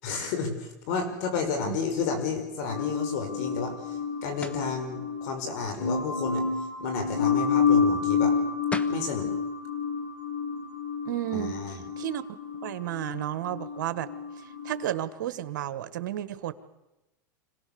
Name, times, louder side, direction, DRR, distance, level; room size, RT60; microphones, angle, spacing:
voice 1, 0.0-6.4 6.8-8.4 8.9-9.3 11.3-11.8, left 5 dB, 65° left, 7 dB, 5.7 m, -31 dB
sound 1, 2.7-14.9, left 5 dB, 85° left, 4.7 m, -29 dB
sound 2, 4.4-4.7 8.4-8.5 8.7-9.1, left 2 dB, 10° left, 1.3 m, -35 dB
voice 2, 11.0-11.6 12.0-12.2 12.6-14.1 14.6-16.5, right 13 dB, 75° right, 13 dB, 1.5 m, -32 dB
26.0 x 18.0 x 7.0 m, 0.99 s
hypercardioid pair, 110°, 10 cm